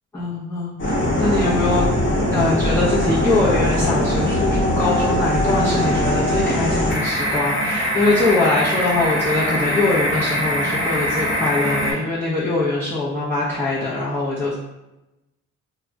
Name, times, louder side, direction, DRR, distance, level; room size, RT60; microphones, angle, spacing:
voice 1, 0.1-0.8 1.2-1.9 2.3-14.5, left 2 dB, 5° left, -10 dB, 0.6 m, -22 dB
sound 1, 0.8-11.9, equal, 40° left, 1.0 m, -21 dB
2.3 x 2.2 x 3.8 m, 0.98 s
cardioid pair, 90°, 30 cm